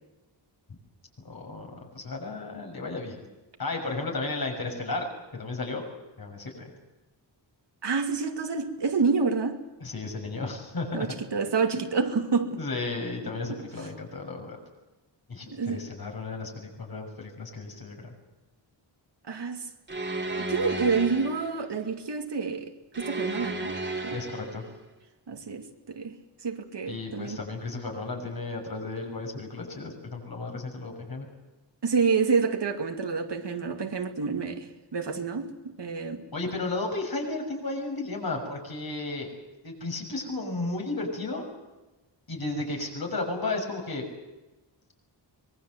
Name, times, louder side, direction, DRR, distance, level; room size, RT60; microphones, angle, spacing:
voice 1, 1.2-3.3 3.6-5.1 5.3-5.9 6.2-6.7 9.8-11.1 11.7-11.9 12.6-14.6 15.3-18.1 24.1-24.6 26.9-31.3 36.3-39.3 39.6-41.5 42.3-44.0, left 3 dB, 50° left, 6.7 m, -34 dB
voice 2, 7.8-9.6 10.9-12.6 13.5-13.6 15.5-15.8 19.3-19.6 20.3-24.2 25.3-26.1 26.4-27.4 31.8-36.3, right 5 dB, 65° right, 2.4 m, -28 dB
sound 1, 19.9-21.6 22.9-24.7, right 2 dB, 25° right, 2.7 m, -33 dB
24.5 x 22.0 x 8.0 m
wide cardioid pair, 155°, 45 cm